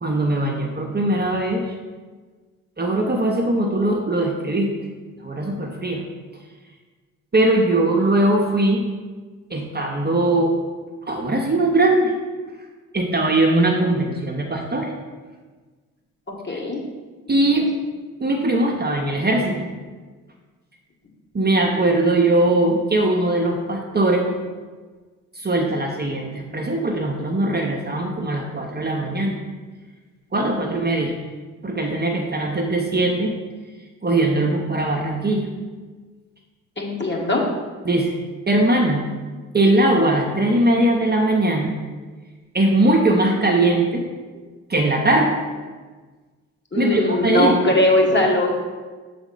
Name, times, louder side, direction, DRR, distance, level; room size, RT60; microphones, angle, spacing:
voice 1, 0.0-1.7 2.8-4.7 5.2-6.0 7.3-8.8 9.5-10.6 11.1-12.1 12.9-14.9 16.5-16.6 17.3-17.7 18.2-19.7 21.3-24.3 25.4-29.4 30.3-31.1 31.6-33.4 34.0-35.5 37.8-38.1 38.5-39.0 39.5-41.7 42.5-44.1 44.7-45.3 46.7-47.5, right 2 dB, 25° right, 0 dB, 1.0 m, -20 dB
voice 2, 16.3-16.8 36.8-37.4 46.7-48.5, left 1 dB, 25° left, -1 dB, 1.6 m, -20 dB
7.0 x 4.2 x 4.0 m, 1.4 s
hypercardioid pair, 40°, 41 cm